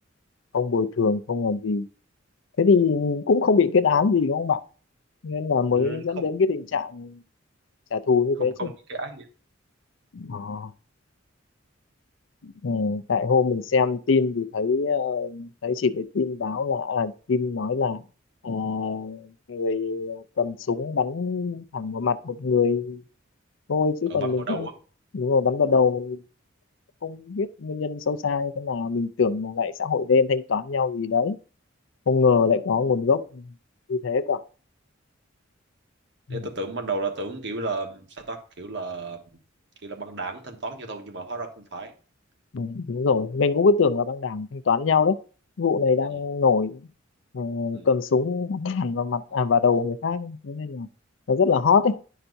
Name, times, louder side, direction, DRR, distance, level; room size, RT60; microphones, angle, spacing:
voice 1, 0.5-1.9 2.6-4.6 5.2-7.2 7.9-8.7 10.1-10.7 12.4-18.0 18.4-23.0 23.7-24.7 25.1-26.2 27.0-31.4 32.1-33.4 33.9-34.4 36.3-36.4 42.5-45.2 45.6-46.8 47.3-50.9 51.3-52.0, left 5 dB, 70° left, 0.5 m, -23 dB
voice 2, 5.7-6.3 8.4-9.3 24.1-24.7 36.3-39.2 39.8-41.9 46.1-46.2 47.7-47.9, right 3 dB, 60° right, 1.3 m, -33 dB
11.0 x 5.7 x 2.6 m
head